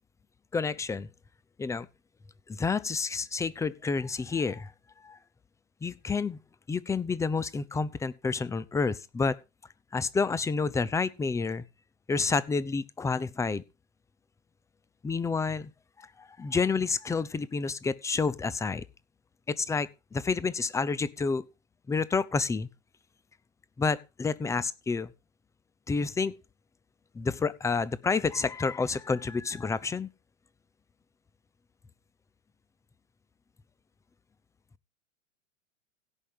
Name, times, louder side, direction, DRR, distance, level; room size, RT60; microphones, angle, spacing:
voice 1, 0.5-1.1 1.6-1.9 2.5-4.7 5.0-5.2 5.8-6.4 6.7-9.4 9.9-11.6 12.1-13.6 15.0-15.7 16.2-18.8 19.5-21.5 21.9-22.7 23.8-25.1 25.9-26.4 27.1-30.1, left 4 dB, 10° left, 0.6 m, -29 dB
16.5 x 5.9 x 5.0 m
hypercardioid pair, 100°, 39 cm